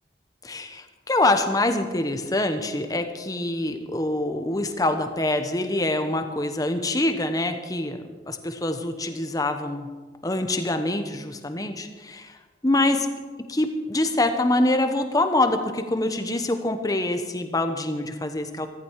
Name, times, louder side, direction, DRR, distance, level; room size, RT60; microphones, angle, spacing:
voice 1, 0.4-8.0 8.3-9.9 10.2-12.3 12.6-13.1 13.4-18.7, left 2 dB, 20° left, 7 dB, 1.0 m, -25 dB
14.5 x 14.5 x 4.7 m, 1.4 s
head